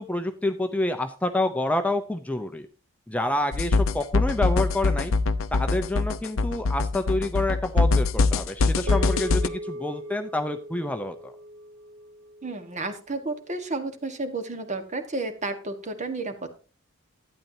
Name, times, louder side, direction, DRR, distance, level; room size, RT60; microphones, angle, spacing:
voice 1, 0.0-2.7 3.1-5.1 5.5-11.3, left 1 dB, 5° left, 7 dB, 0.6 m, -28 dB
sound 1, 3.5-9.5, left 3 dB, 80° left, 0.6 m, -23 dB
sound 2, 8.9-13.4, equal, 85° right, 0.9 m, -39 dB
voice 2, 12.4-16.5, right 3 dB, 35° right, 8 dB, 1.4 m, -32 dB
12.0 x 9.2 x 2.8 m, 0.36 s
head